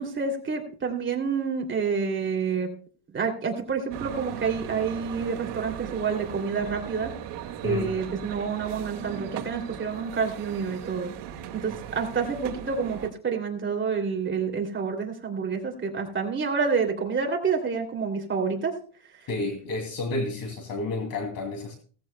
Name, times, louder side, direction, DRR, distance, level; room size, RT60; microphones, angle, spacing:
voice 1, 0.0-2.7 3.1-7.1 7.6-11.1 11.5-18.7 19.1-19.3, right 5 dB, 25° right, 2 dB, 2.8 m, -28 dB
sound 1, 3.9-13.1, right 10 dB, 60° right, 2.1 m, -38 dB
voice 2, 19.3-21.7, left 2 dB, 45° left, 3 dB, 2.7 m, -30 dB
17.5 x 14.5 x 2.2 m, 0.42 s
cardioid pair, 130°, 47 cm